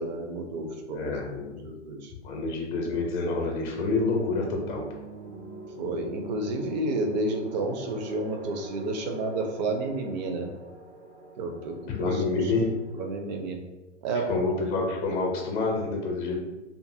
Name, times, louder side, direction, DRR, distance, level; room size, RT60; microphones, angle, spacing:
voice 1, 0.0-1.2 1.6-2.1 5.8-10.5 11.4-12.5 12.9-13.6 14.0-14.3, right 2 dB, 40° right, 4 dB, 0.5 m, -31 dB
voice 2, 0.9-1.6 2.2-4.8 12.0-12.7 14.3-16.4, left 3 dB, 45° left, -1 dB, 0.7 m, -28 dB
sound 1, 3.6-13.4, right 2 dB, 90° right, 1.0 m, -44 dB
2.5 x 2.5 x 2.6 m, 1.1 s
hypercardioid pair, 120°, 36 cm